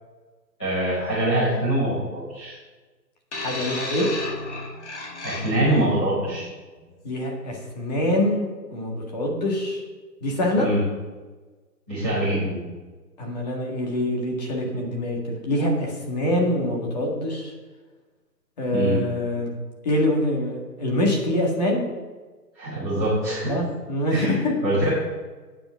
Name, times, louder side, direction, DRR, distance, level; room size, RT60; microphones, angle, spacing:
voice 1, 0.6-2.5 5.2-6.5 10.5-10.8 11.9-12.6 18.7-19.0 22.5-23.5 24.1-24.3 24.6-24.9, right 1 dB, 5° left, -19 dB, 0.7 m, -24 dB
sound 1, 3.3-5.9 6.8-6.9, left 2 dB, 45° left, 1.8 m, -33 dB
voice 2, 3.4-4.1 7.0-9.8 10.2-10.7 13.2-17.5 18.6-19.5 19.8-21.9 23.5-24.6, left 1 dB, 25° left, 0 dB, 1.7 m, -25 dB
8.9 x 7.0 x 5.6 m, 1.3 s
hypercardioid pair, 160°, 49 cm